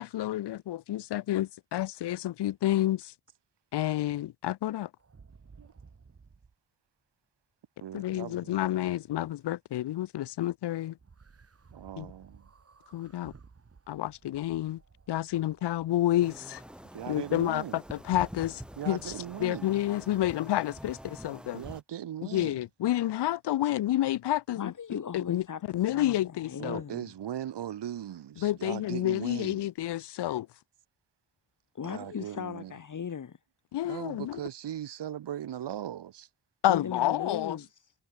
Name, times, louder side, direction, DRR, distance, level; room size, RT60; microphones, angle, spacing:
voice 1, 0.0-3.1 3.7-4.9 7.9-11.0 12.0-12.1 12.9-13.3 13.9-14.8 15.1-16.6 17.1-19.1 19.4-21.6 22.3-25.4 25.7-26.8 28.4-30.5 33.7-34.4 36.6-37.6, left 14 dB, 85° left, 0.6 m, -29 dB
sound 1, 5.0-6.6 11.0-20.3 20.9-21.0, right 5 dB, 35° right, 2.0 m, -57 dB
voice 2, 7.8-8.6 11.7-12.5 16.9-17.8 18.8-19.7 21.5-22.6 26.6-29.7 31.8-32.7 33.8-36.3, right 11 dB, 90° right, 1.4 m, -39 dB
sound 2, 16.2-21.8, equal, ahead, 1.8 m, -46 dB
voice 3, 24.5-27.1 31.7-33.4 36.7-37.9, left 7 dB, 50° left, 1.3 m, -38 dB
cardioid pair, 85°, 40 cm